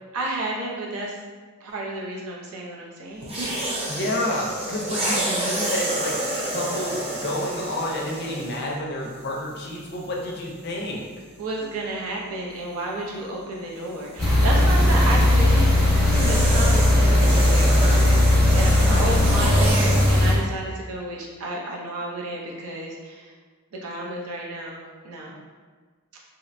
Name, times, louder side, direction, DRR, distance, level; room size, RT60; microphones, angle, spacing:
voice 1, 0.1-1.2 1.6-3.7 11.4-23.3 23.8-25.3, right 2 dB, 80° right, -3 dB, 0.5 m, -31 dB
sound 1, 3.2-8.7 9.6-9.8 13.7-20.4, right 1 dB, 25° right, 0.3 m, -29 dB
voice 2, 3.9-11.1 14.5-14.7 18.8-19.2, left 1 dB, 45° left, -1 dB, 0.4 m, -30 dB
sound 2, 14.2-20.3, left 1 dB, 5° left, 0.8 m, -18 dB
2.7 x 2.1 x 2.5 m, 1.4 s
head